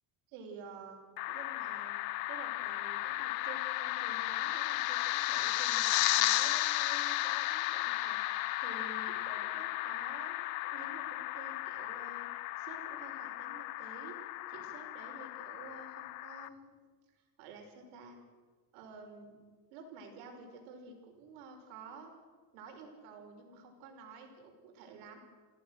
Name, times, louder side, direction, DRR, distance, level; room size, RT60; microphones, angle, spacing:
voice 1, 0.3-1.0 1.3-1.9 2.3-14.2 14.5-16.7 17.1-18.2 18.7-19.4 19.7-22.1 22.5-25.2, right 4 dB, 65° right, 3 dB, 5.7 m, -51 dB
sound 1, 1.2-16.5, left 17 dB, 90° left, 1.2 m, -34 dB
29.5 x 17.0 x 6.6 m, 1.4 s
cardioid pair, 175°, 40 cm